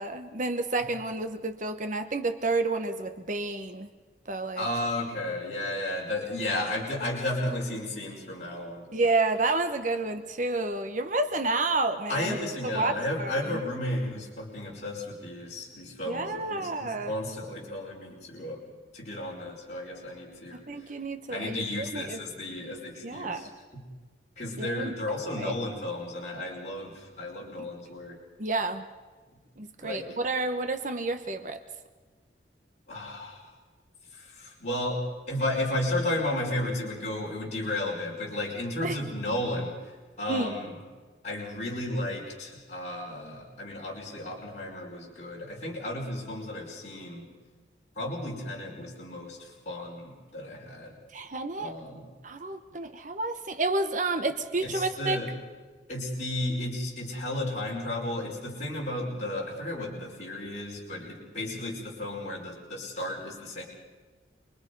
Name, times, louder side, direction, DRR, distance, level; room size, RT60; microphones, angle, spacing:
voice 1, 0.0-3.9 4.3-4.7 8.9-12.4 12.7-13.6 16.1-17.1 20.7-22.2 23.0-23.5 24.6-24.9 25.4-25.5 27.6-27.7 28.4-28.9 29.6-31.6 38.8-39.0 40.3-40.5 51.1-51.8 52.2-55.2, right 3 dB, 45° right, 8 dB, 1.0 m, -30 dB
voice 2, 4.6-8.8 12.1-18.6 18.9-20.9 21.3-23.5 24.4-28.2 29.8-30.1 32.9-33.5 34.1-40.8 41.2-47.3 47.9-51.0 51.6-52.1 54.6-55.3 55.9-63.6, left 1 dB, 40° left, -5 dB, 5.1 m, -33 dB
27.0 x 22.0 x 5.4 m, 1.4 s
head